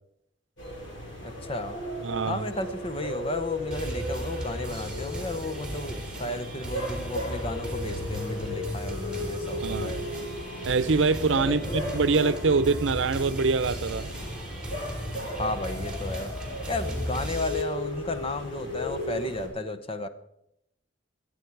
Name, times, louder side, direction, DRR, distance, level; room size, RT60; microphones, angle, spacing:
sound 1, 0.6-19.5, left 1 dB, 85° left, 7.3 m, -36 dB
voice 1, 1.2-1.8 2.3-10.1 11.4-11.8 15.4-16.3 16.7-20.1, left 2 dB, 30° left, 0.8 m, -33 dB
voice 2, 2.0-2.5 9.6-9.9 10.6-14.1, right 4 dB, 80° right, 0.7 m, -24 dB
sound 2, 3.7-17.6, right 1 dB, 5° right, 3.2 m, -37 dB
sound 3, 11.0-17.4, equal, 20° right, 3.9 m, -43 dB
23.5 x 8.7 x 4.7 m
head